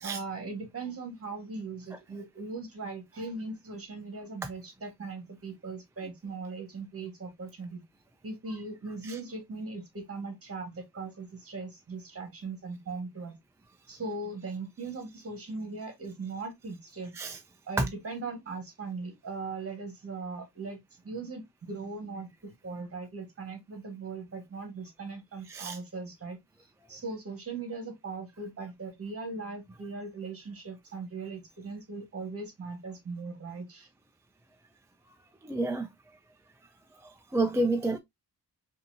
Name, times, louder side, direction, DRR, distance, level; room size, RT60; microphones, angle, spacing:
voice 1, 0.0-7.8 8.2-13.4 13.9-17.2 17.7-26.4 26.9-33.9, right 3 dB, 35° right, 1.6 m, -39 dB
voice 2, 35.4-35.9 37.3-38.0, right 2 dB, 10° right, 0.3 m, -28 dB
5.3 x 2.7 x 2.6 m
wide cardioid pair, 160°, 39 cm